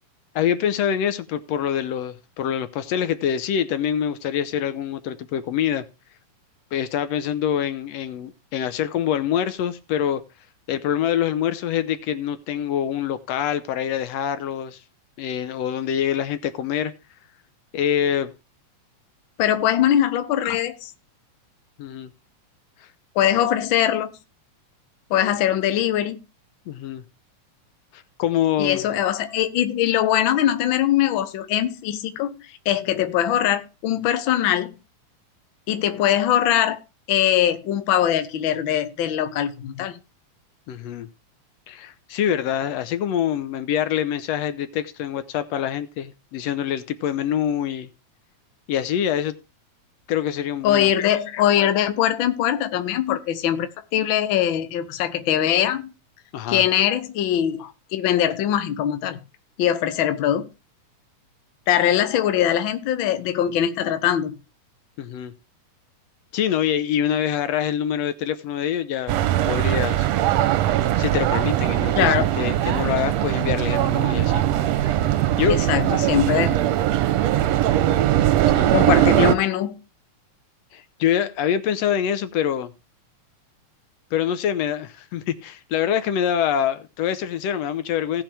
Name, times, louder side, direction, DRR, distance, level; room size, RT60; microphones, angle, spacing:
voice 1, 0.3-5.8 6.7-10.2 10.7-14.8 15.2-16.9 17.7-18.3 21.8-22.1 26.7-27.0 27.9-28.8 40.7-41.1 41.7-47.9 48.7-49.4 50.1-50.9 56.3-56.6 65.0-65.3 66.3-69.1 69.5-70.1 71.0-74.4 75.4-75.6 78.4-78.7 80.7-82.7 84.1-88.2, left 9 dB, 70° left, 1.7 m, -25 dB
voice 2, 19.4-20.9 23.1-24.1 25.1-26.2 28.6-34.7 35.7-36.8 37.1-40.0 50.6-55.9 56.5-59.2 59.6-60.5 61.7-64.4 71.9-72.2 75.5-76.6 78.7-79.8, left 11 dB, 90° left, 1.1 m, -22 dB
sound 1, 69.1-79.3, right 13 dB, 70° right, 1.7 m, -20 dB
17.5 x 6.0 x 3.4 m
omnidirectional pair, 3.5 m